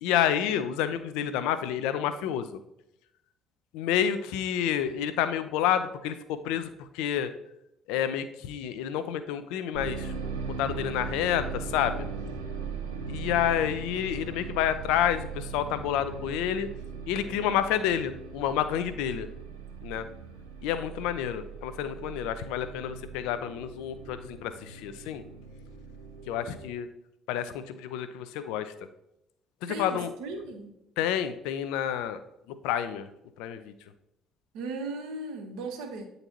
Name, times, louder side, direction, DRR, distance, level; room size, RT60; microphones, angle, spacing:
voice 1, 0.0-2.6 3.7-7.3 7.9-10.1 10.4-12.1 13.1-16.7 17.1-19.3 19.8-20.1 20.6-25.2 26.3-26.9 27.3-28.7 29.6-30.1 31.0-32.2 32.5-33.1 33.4-33.7, left 10 dB, 65° left, 12 dB, 0.4 m, -29 dB
sound 1, 9.7-26.7, right 5 dB, 80° right, 0.6 m, -39 dB
voice 2, 29.7-30.7 34.5-36.0, right 2 dB, 65° right, 3 dB, 1.0 m, -36 dB
8.7 x 3.9 x 2.9 m, 0.82 s
figure-of-eight pair, 50°, 0 cm